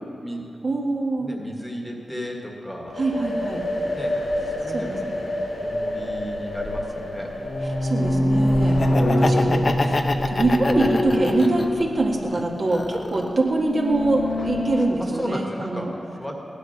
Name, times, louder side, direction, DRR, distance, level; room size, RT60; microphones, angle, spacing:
voice 1, 0.6-1.3 3.0-3.6 4.7-5.3 7.6-8.8 9.2-10.0 10.3-16.0, right 2 dB, 45° right, -2 dB, 1.8 m, -24 dB
voice 2, 1.2-3.0 3.9-5.1 5.6-7.3 15.0-16.3, equal, 5° left, 0 dB, 1.7 m, -34 dB
sound 1, 2.9-10.5, left 1 dB, 80° left, 2.2 m, -30 dB
sound 2, 4.3-4.4 6.1-6.9 7.2-12.7 13.5-14.8, left 1 dB, 60° left, 1.5 m, -24 dB
Laughter, 8.7-11.8 12.3-13.4, left 2 dB, 35° left, 0.8 m, -26 dB
17.5 x 11.5 x 5.9 m, 2.9 s
wide cardioid pair, 125°, 0 cm